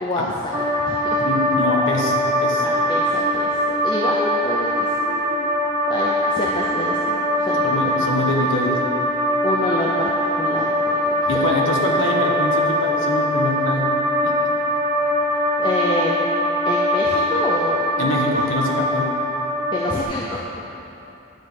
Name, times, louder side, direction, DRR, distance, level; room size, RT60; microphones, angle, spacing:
voice 1, 0.0-1.2 2.6-5.5 5.9-8.3 9.4-10.1 10.4-11.4 15.6-16.1 16.7-18.2 19.7-20.5, left 1 dB, 25° left, -3 dB, 0.6 m, -27 dB
sound 1, 0.5-20.0, equal, 20° right, 1.3 m, -22 dB
voice 2, 1.2-2.7 7.6-8.9 11.3-13.9 14.2-14.4 18.0-19.1, left 2 dB, 65° left, 0 dB, 1.2 m, -24 dB
11.0 x 4.3 x 7.3 m, 2.9 s
head